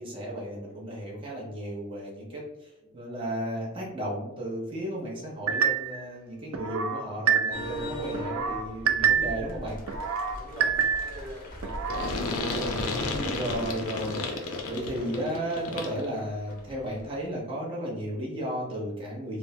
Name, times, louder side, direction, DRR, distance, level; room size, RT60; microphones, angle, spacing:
voice 1, 0.0-9.8 12.9-19.4, equal, 25° right, -4 dB, 0.9 m, -34 dB
sound 1, 5.5-6.0 6.5-7.8 8.1-9.5 9.9-11.2 11.6-12.1, right 7 dB, 70° right, 0.3 m, -27 dB
sound 2, 7.5-17.3, equal, 40° left, 0.6 m, -41 dB
voice 2, 10.3-12.2, equal, 5° left, -4 dB, 0.7 m, -44 dB
sound 3, 11.9-16.1, left 2 dB, 90° left, 0.5 m, -32 dB
3.5 x 2.1 x 2.7 m, 0.94 s
head